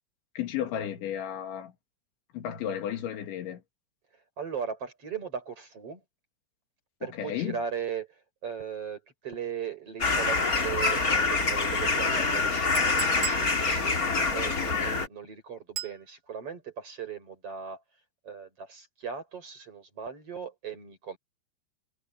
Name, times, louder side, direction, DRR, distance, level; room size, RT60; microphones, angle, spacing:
voice 1, 0.4-1.7 2.3-3.6 7.0-7.6, left 10 dB, 90° left, 4.7 m, -33 dB
voice 2, 4.4-6.0 7.0-8.1 8.4-17.8 18.2-21.2, right 7 dB, 30° right, 6.1 m, -38 dB
sound 1, 10.0-15.1, left 3 dB, 25° left, 2.2 m, -26 dB
Chink clink, 12.8-13.5 15.8-16.0, right 9 dB, 50° right, 3.9 m, -35 dB
omnidirectional pair, 5.1 m